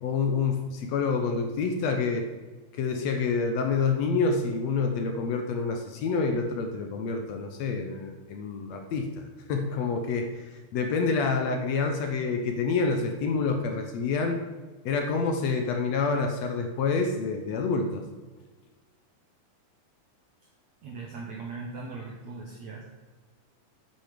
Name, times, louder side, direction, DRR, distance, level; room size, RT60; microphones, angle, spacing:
voice 1, 0.0-2.3 2.7-9.2 9.5-14.4 14.8-18.0, left 4 dB, 75° left, 4 dB, 1.6 m, -27 dB
voice 2, 20.8-22.8, right 3 dB, 60° right, -3 dB, 2.2 m, -39 dB
8.6 x 8.5 x 5.1 m, 1.3 s
omnidirectional pair, 4.1 m